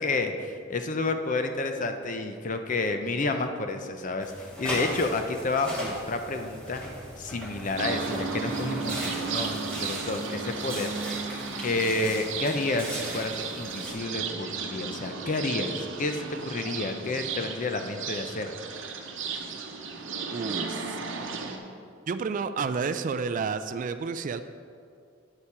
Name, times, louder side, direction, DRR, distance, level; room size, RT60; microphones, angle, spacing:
voice 1, 0.0-4.3 4.6-6.8 7.2-10.9 11.6-18.5, left 3 dB, 40° left, 6 dB, 0.6 m, -30 dB
sound 1, 4.2-13.9, equal, 5° left, 2.0 m, -38 dB
sound 2, 7.8-21.6, right 4 dB, 65° right, 0.8 m, -34 dB
voice 2, 20.3-21.3 22.1-24.4, right 5 dB, 40° right, 10 dB, 0.3 m, -31 dB
8.7 x 7.1 x 4.8 m, 2.4 s
head